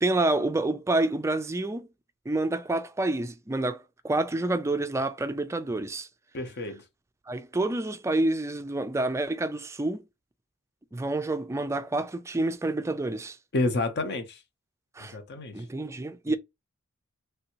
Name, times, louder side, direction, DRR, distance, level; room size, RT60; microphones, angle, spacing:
voice 1, 0.0-1.9 2.3-6.1 7.3-10.0 10.9-13.4 15.0-15.2 15.5-16.4, right 2 dB, 15° right, 0.3 m, -28 dB
voice 2, 6.3-6.8 13.5-14.4 15.0-15.6 16.3-16.4, left 2 dB, 50° left, 0.7 m, -29 dB
3.3 x 2.6 x 2.8 m
head